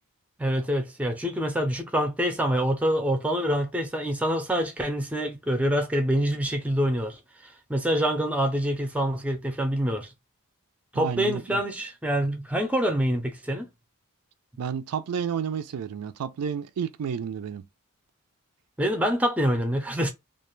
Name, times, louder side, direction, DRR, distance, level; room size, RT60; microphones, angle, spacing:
voice 1, 0.4-10.1 10.9-13.7 18.8-20.1, equal, 5° right, 0.4 m, -26 dB
voice 2, 10.9-11.6 14.6-17.6, right 7 dB, 90° right, 0.4 m, -31 dB
2.4 x 2.2 x 3.0 m
head